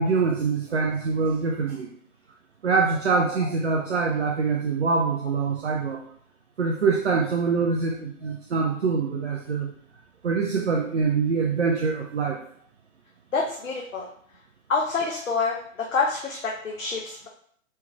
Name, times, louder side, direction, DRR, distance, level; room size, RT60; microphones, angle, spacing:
voice 1, 0.0-1.9 2.6-6.0 6.6-9.7 10.2-12.4, right 5 dB, 55° right, 0 dB, 0.6 m, -24 dB
voice 2, 13.3-14.1 14.7-17.3, left 4 dB, 65° left, -1 dB, 0.8 m, -27 dB
4.4 x 3.1 x 3.4 m, 0.62 s
figure-of-eight pair, 125°, 41 cm